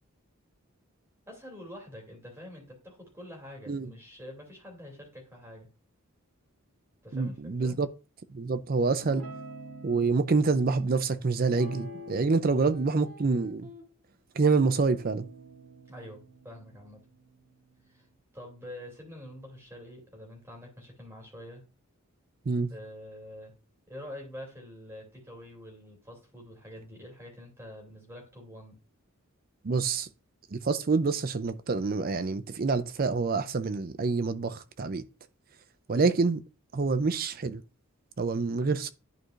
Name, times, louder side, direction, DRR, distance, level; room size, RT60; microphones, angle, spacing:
voice 1, 1.3-5.7 7.0-7.8 12.4-12.7 15.9-17.0 17.9-18.1 18.3-21.6 22.7-23.5 23.9-28.8 36.8-37.0, left 1 dB, 10° right, 2.8 m, -46 dB
voice 2, 7.1-7.9 8.3-9.3 9.8-13.7 14.4-15.3 22.5-22.7 29.6-30.1 30.5-35.0 35.9-36.4 36.7-37.6 38.2-38.9, right 4 dB, 40° right, 0.5 m, -27 dB
Guitar, 9.0-10.2 11.5-12.4 12.7-13.8 14.4-17.9, right 1 dB, 90° right, 2.2 m, -46 dB
11.0 x 4.6 x 2.5 m
head